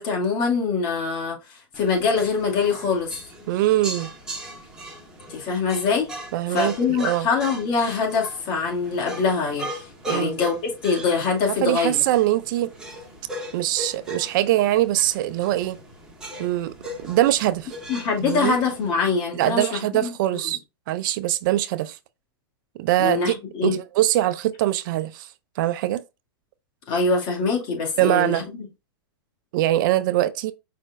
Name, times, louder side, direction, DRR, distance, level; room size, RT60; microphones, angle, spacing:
voice 1, 0.0-3.2 5.3-6.1 6.5-10.6 10.8-12.0 17.9-20.1 20.4-20.5 23.0-23.8 26.9-28.7, left 5 dB, 40° left, 2.2 m, -24 dB
sound 1, 1.7-18.9, right 1 dB, 5° right, 1.4 m, -39 dB
voice 2, 3.5-4.1 6.3-7.3 10.1-10.4 11.6-12.7 13.5-15.8 16.4-16.7 17.0-17.7 18.2-18.6 19.3-20.6 20.9-22.0 22.8-23.3 23.6-25.3 25.6-26.0 28.0-28.5 29.5-30.5, right 14 dB, 55° right, 0.5 m, -22 dB
5.0 x 4.2 x 2.5 m
hypercardioid pair, 140°, 13 cm